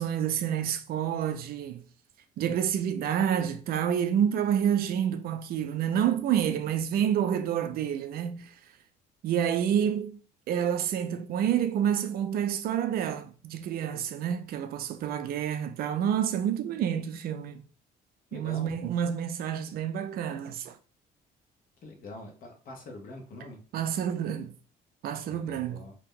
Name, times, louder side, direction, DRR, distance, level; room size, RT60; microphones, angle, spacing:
voice 1, 0.0-1.8 2.4-8.5 9.2-10.2 10.5-17.6 18.3-20.8 23.7-24.5 25.0-25.8, right 9 dB, 60° right, 0.4 m, -28 dB
voice 2, 18.3-18.8 21.8-23.6 25.3-25.9, left 2 dB, 55° left, 1.0 m, -44 dB
2.7 x 2.1 x 3.7 m
cardioid pair, 110°, 17 cm